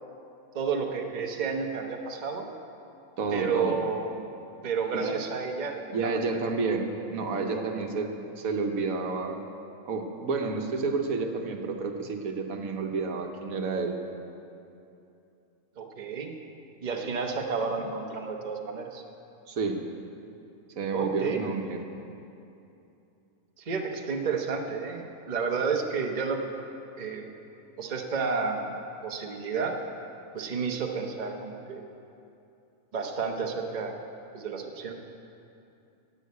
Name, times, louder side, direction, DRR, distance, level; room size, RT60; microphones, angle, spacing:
voice 1, 0.5-2.5 3.3-4.3 4.6-6.3 6.9-7.0 7.3-7.7 15.8-16.3 16.8-19.0 20.9-21.4 23.6-26.4 27.0-27.3 27.8-29.8 30.3-31.8 32.9-33.9 34.3-34.9, right 5 dB, 35° right, 2 dB, 1.0 m, -31 dB
voice 2, 3.2-3.8 4.9-5.2 5.9-9.4 9.8-14.0 17.8-17.9 19.5-19.8 20.8-21.8, right 4 dB, 80° right, 4 dB, 1.4 m, -30 dB
11.0 x 8.3 x 8.2 m, 2.7 s
omnidirectional pair, 1.5 m